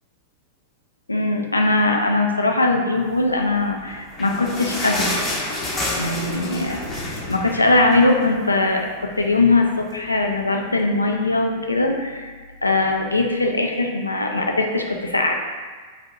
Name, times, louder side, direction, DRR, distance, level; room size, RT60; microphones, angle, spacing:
voice 1, 1.1-5.2 6.0-12.3 12.6-15.3, left 2 dB, 85° left, 2 dB, 0.3 m, -21 dB
sound 1, 3.7-8.5 8.8-8.9 9.2-9.4 10.1-10.2, left 2 dB, 25° left, 0.6 m, -28 dB
4.0 x 2.6 x 2.2 m, 1.4 s
figure-of-eight pair, 95°, 0 cm